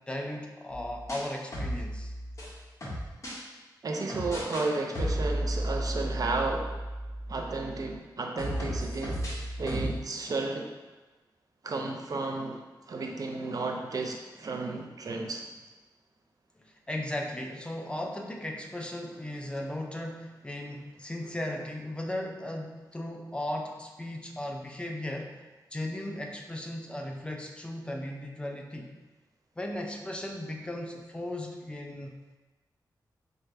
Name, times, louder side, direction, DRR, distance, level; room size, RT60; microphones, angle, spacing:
voice 1, 0.1-2.1 3.3-3.4 16.6-25.3 25.7-28.9 29.6-32.1, left 1 dB, 15° left, 1 dB, 0.4 m, -36 dB
sound 1, 0.7-3.4 4.1-4.7 4.9-7.9 8.4-10.0, equal, 40° left, 1.0 m, -34 dB
voice 2, 3.8-6.8 7.3-10.7 11.6-12.6 12.9-15.4, right 3 dB, 50° right, 2 dB, 0.4 m, -33 dB
4.5 x 2.5 x 3.2 m, 1.2 s
wide cardioid pair, 125°, 8 cm